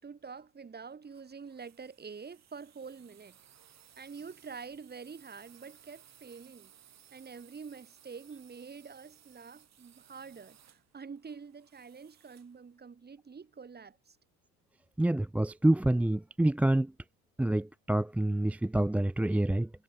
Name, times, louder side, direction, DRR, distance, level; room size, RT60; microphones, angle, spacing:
voice 1, 0.0-3.4 4.0-6.7 7.1-14.2, right 5 dB, 25° right, 6.0 m, -47 dB
sound 1, 1.0-12.6, right 10 dB, 45° right, 7.2 m, -61 dB
voice 2, 15.0-16.9 17.4-19.7, right 1 dB, 5° right, 0.4 m, -27 dB
cardioid pair, 105°, 36 cm